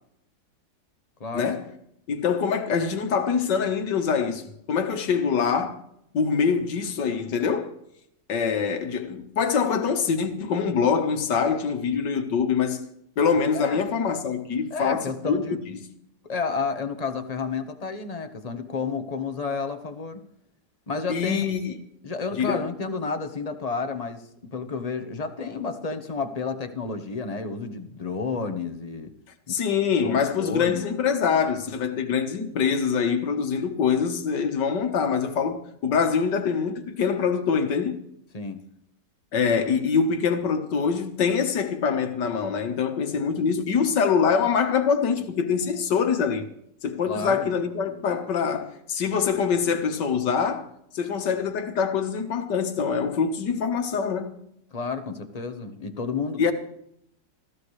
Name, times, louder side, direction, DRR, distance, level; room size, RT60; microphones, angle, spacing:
voice 1, 1.3-1.7 2.1-5.8 6.1-7.7 8.3-12.8 13.2-15.8 21.1-21.8 22.3-22.6 29.5-38.0 39.3-46.4 46.8-50.7 50.9-54.3 56.4-56.5, left 6 dB, 70° left, 2.1 m, -24 dB
voice 2, 14.7-15.6 16.3-20.2 20.9-21.5 22.0-29.1 29.5-29.6 30.0-30.9 38.3-38.6 47.1-47.5 54.7-56.5, left 4 dB, 25° left, 1.0 m, -31 dB
20.5 x 15.5 x 3.2 m
omnidirectional pair, 1.9 m